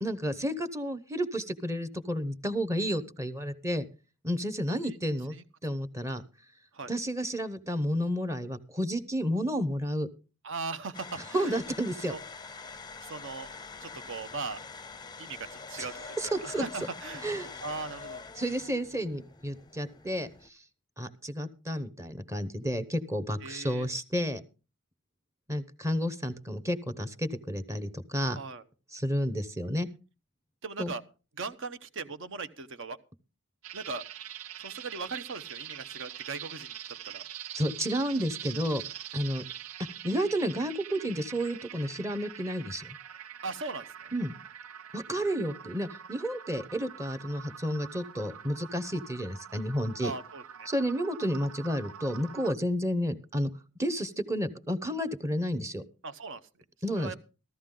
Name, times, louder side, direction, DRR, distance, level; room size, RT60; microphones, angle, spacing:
voice 1, 0.0-3.8 4.2-5.3 5.6-6.2 6.9-10.1 11.3-12.1 15.8-15.9 16.2-16.6 17.2-17.5 18.4-20.6 21.0-24.4 25.5-28.4 28.9-29.9 30.8-30.9 37.5-38.8 39.1-39.4 40.0-42.9 44.1-44.3 44.9-50.1 50.7-53.5 53.8-55.8 56.8-57.1, equal, 15° right, 13 dB, 0.8 m, -31 dB
voice 2, 10.4-11.6 12.1-12.2 13.0-13.5 13.8-14.6 15.2-17.2 17.6-18.2 23.4-23.9 28.3-28.6 30.6-31.0 31.4-33.0 33.7-34.0 34.6-36.8 37.0-37.2 43.4-44.1 50.0-50.7 56.0-56.4 56.9-57.1, right 4 dB, 60° right, 12 dB, 1.0 m, -39 dB
sound 1, 10.9-20.5, left 4 dB, 20° left, 0.6 m, -45 dB
sound 2, 33.6-52.6, right 10 dB, 75° right, 0.6 m, -44 dB
14.0 x 13.5 x 3.8 m, 0.33 s
head